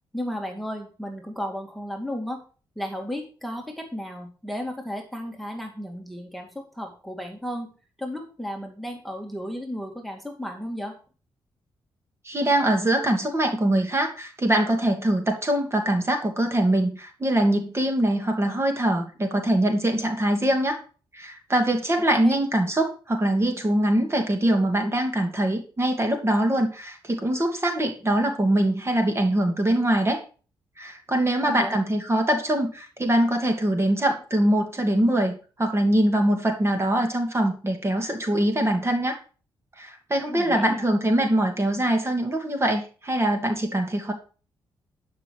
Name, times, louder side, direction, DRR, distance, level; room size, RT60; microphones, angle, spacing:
voice 1, 0.1-2.4 2.8-7.7 8.0-11.0 22.1-22.3 31.4-31.8 40.3-40.9, equal, ahead, 2 dB, 2.3 m, -34 dB
voice 2, 12.2-20.8 21.1-30.2 30.8-39.2 39.8-44.1, right 1 dB, 30° right, 3 dB, 2.6 m, -23 dB
10.5 x 5.9 x 4.9 m, 0.38 s
cardioid pair, 65°, 9 cm